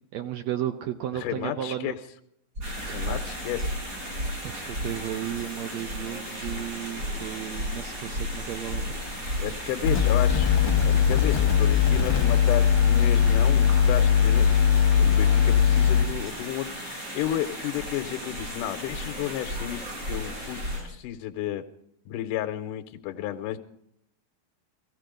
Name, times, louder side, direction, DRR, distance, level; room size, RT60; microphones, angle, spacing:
voice 1, 0.1-2.0 2.6-3.4 4.4-10.1 10.9-11.2, right 11 dB, 75° right, 8 dB, 1.7 m, -35 dB
voice 2, 1.1-1.9 2.9-3.7 9.4-10.5 10.8-14.5 15.0-21.6 22.1-23.6, left 12 dB, 80° left, 7 dB, 2.3 m, -32 dB
sound 1, 2.6-20.9, left 1 dB, 35° right, 3.3 m, -36 dB
sound 2, 2.6-20.8, right 1 dB, 55° right, 9.0 m, -38 dB
sound 3, 9.8-16.0, left 8 dB, 50° left, 1.6 m, -20 dB
17.5 x 15.0 x 5.1 m, 0.72 s
omnidirectional pair, 3.8 m